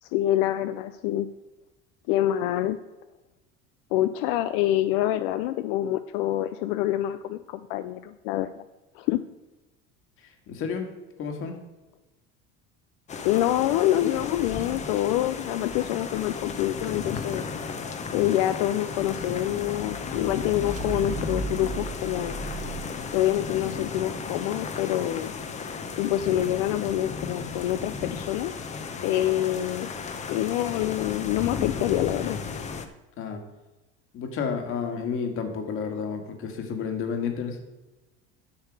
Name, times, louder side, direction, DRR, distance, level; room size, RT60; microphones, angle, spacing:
voice 1, 0.0-1.3 2.1-2.8 3.9-8.6 9.0-9.2 13.2-17.5 18.1-22.4 23.1-25.3 26.0-28.5 29.0-29.9 30.3-32.4, left 13 dB, 85° left, 11 dB, 0.5 m, -26 dB
voice 2, 10.2-10.9 11.2-11.5 33.2-33.4 34.1-37.6, left 6 dB, 45° left, 5 dB, 1.8 m, -31 dB
sound 1, 13.1-32.9, left 5 dB, 25° left, 0.8 m, -35 dB
sound 2, 19.7-23.7, right 4 dB, 25° right, 0.8 m, -37 dB
10.5 x 6.6 x 4.8 m, 1.1 s
cardioid pair, 140°, 29 cm